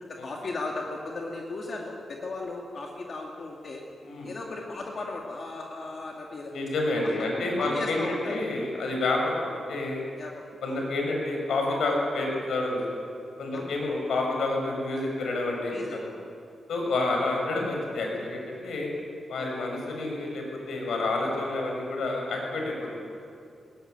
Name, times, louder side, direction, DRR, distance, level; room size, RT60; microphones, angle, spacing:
voice 1, 0.1-3.8 4.2-6.5 7.0-7.1 7.6-8.4 10.2-10.8 13.5-13.8 15.7-16.0 16.9-17.0 19.3-19.5, left 3 dB, 45° left, 0 dB, 2.3 m, -36 dB
voice 2, 6.5-10.0 10.6-12.8 13.4-16.0 16.7-18.9 19.3-23.0, left 2 dB, 80° left, 0 dB, 6.4 m, -29 dB
21.0 x 17.5 x 9.5 m, 2.4 s
wide cardioid pair, 145°, 0 cm